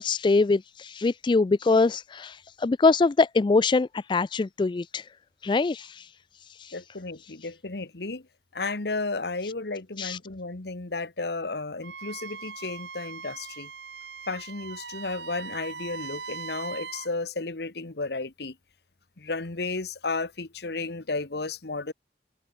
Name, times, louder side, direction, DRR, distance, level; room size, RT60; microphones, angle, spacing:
voice 1, 0.0-5.1 5.4-6.1 6.5-6.7 10.0-10.2, left 3 dB, 25° left, 0.3 m, -23 dB
voice 2, 6.7-8.3 8.5-13.7 14.3-18.6 19.2-21.9, left 3 dB, 60° left, 1.3 m, -33 dB
Wind instrument woodwind instrument, 11.8-17.1, right 5 dB, 70° right, 3.8 m, -40 dB
head